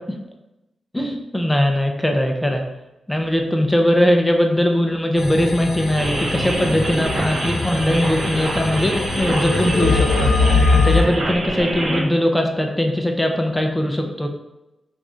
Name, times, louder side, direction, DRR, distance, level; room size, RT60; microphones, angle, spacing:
voice 1, 0.9-2.7 3.1-14.3, left 1 dB, 10° left, 3 dB, 0.5 m, -20 dB
sound 1, 5.2-11.0, left 4 dB, 80° left, 0.8 m, -22 dB
sound 2, 6.0-12.0, right 1 dB, 55° right, 0.8 m, -25 dB
2.9 x 2.5 x 3.6 m, 0.96 s
cardioid pair, 50°, 0 cm